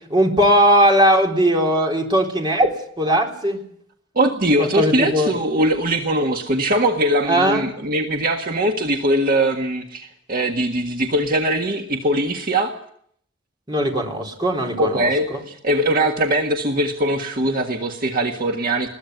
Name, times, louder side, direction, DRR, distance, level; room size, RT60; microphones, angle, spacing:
voice 1, 0.1-2.7 3.0-3.6 4.6-5.3 7.3-7.7 13.7-15.4, equal, 25° right, 1 dB, 4.0 m, -18 dB
voice 2, 4.1-12.7 14.8-18.9, right 1 dB, 45° right, 3 dB, 1.7 m, -21 dB
21.5 x 16.0 x 9.6 m, 0.67 s
head